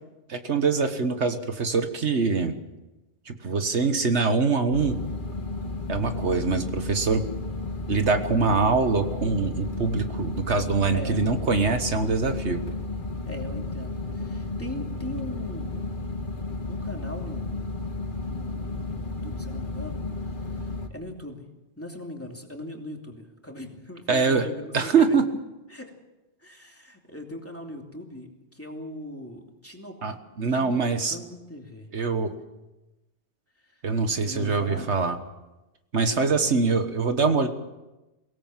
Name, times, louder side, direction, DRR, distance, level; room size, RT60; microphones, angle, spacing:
voice 1, 0.3-2.6 3.3-5.0 5.9-7.2 7.9-12.6 24.1-24.5 24.7-25.2 30.0-31.2 31.9-32.3 33.8-35.2 35.9-37.5, right 4 dB, 75° right, 8 dB, 1.7 m, -24 dB
sound 1, 4.7-20.9, left 2 dB, 45° left, 1.9 m, -33 dB
voice 2, 10.9-11.2 13.3-15.9 16.7-17.6 18.2-20.0 20.5-21.4 21.8-25.2 25.7-25.9 26.4-30.0 30.5-30.8 31.1-31.9 33.6-33.8 34.2-34.9, left 1 dB, 10° left, 1 dB, 2.9 m, -40 dB
23.0 x 18.0 x 7.4 m, 1.0 s
omnidirectional pair, 1.2 m